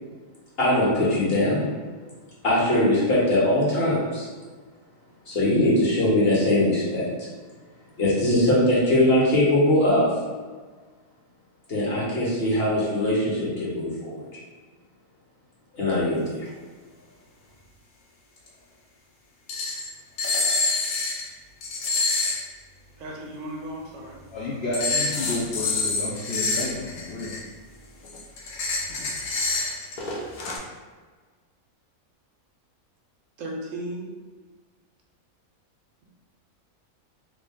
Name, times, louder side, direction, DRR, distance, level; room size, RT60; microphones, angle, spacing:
voice 1, 0.6-1.7 2.4-4.3 5.3-7.3 8.0-10.2 11.7-14.2 15.7-16.5, left 1 dB, 50° left, -6 dB, 1.1 m, -21 dB
sound 1, 18.5-18.6 19.5-19.9 20.2-21.3 21.6-22.4 24.7-27.5 28.0-30.6, left 3 dB, 85° left, 1.1 m, -27 dB
voice 2, 23.0-24.2 33.4-34.1, right 1 dB, 70° right, -1 dB, 0.9 m, -35 dB
voice 3, 24.3-27.4, left 2 dB, 65° left, -4 dB, 0.6 m, -31 dB
3.2 x 2.4 x 3.5 m, 1.4 s
omnidirectional pair, 1.5 m